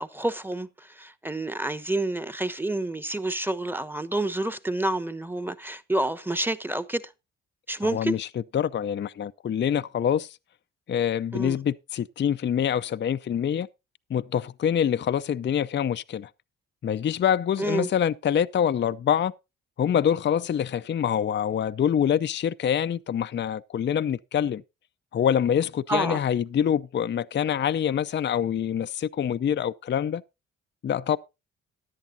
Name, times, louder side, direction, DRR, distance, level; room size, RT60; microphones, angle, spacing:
voice 1, 0.0-7.0 7.7-8.1 11.3-11.6 17.6-17.9 25.9-26.2, right 1 dB, 5° right, 1.0 m, -28 dB
voice 2, 7.8-8.3 8.5-10.4 10.9-13.7 14.1-16.3 16.8-19.3 19.8-24.6 25.1-30.2 30.8-31.2, left 9 dB, 35° left, 0.5 m, -25 dB
16.0 x 10.5 x 2.7 m
hypercardioid pair, 45°, 32 cm